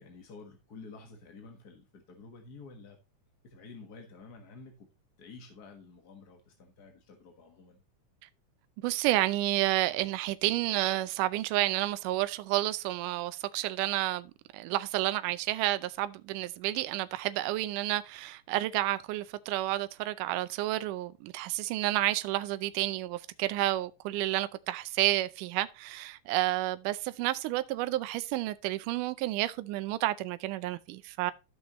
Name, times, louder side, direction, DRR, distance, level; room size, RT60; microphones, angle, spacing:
voice 1, 0.0-3.0 3.4-4.9 5.2-7.8, left 4 dB, 45° left, 1.4 m, -50 dB
voice 2, 8.8-31.3, right 16 dB, 85° right, 2.2 m, -30 dB
13.5 x 6.2 x 3.0 m
omnidirectional pair, 3.7 m